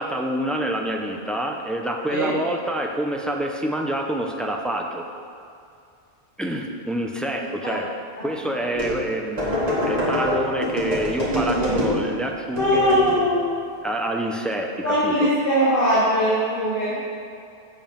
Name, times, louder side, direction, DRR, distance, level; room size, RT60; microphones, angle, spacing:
voice 1, 0.0-5.1 6.4-7.9 8.2-9.6 9.9-13.0 13.8-15.3, right 1 dB, ahead, 1 dB, 0.4 m, -27 dB
sound 1, 8.7-9.0 9.4-12.1 12.5-13.3, left 1 dB, 35° right, 2.0 m, -25 dB
voice 2, 11.2-12.0 12.5-13.5 14.8-16.9, equal, 50° left, -11 dB, 2.3 m, -21 dB
7.6 x 7.1 x 5.3 m, 2.4 s
omnidirectional pair, 1.2 m